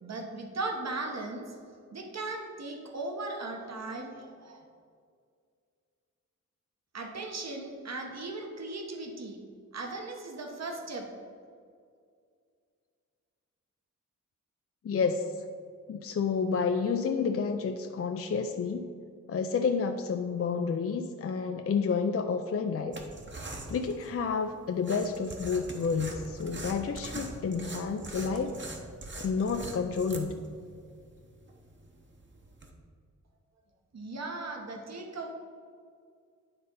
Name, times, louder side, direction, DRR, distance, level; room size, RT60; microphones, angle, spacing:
voice 1, 0.0-1.4 1.9-4.6 6.9-9.4 9.7-11.1 33.9-35.3, right 2 dB, 60° right, 2 dB, 1.1 m, -37 dB
voice 2, 14.8-15.5 15.9-18.9 19.3-23.0 23.7-28.6 29.2-30.4, left 5 dB, 50° left, 6 dB, 0.4 m, -30 dB
sound 1, 22.9-32.7, right 2 dB, 35° right, 1.0 m, -43 dB
9.6 x 3.9 x 5.4 m, 2.2 s
wide cardioid pair, 95°, 31 cm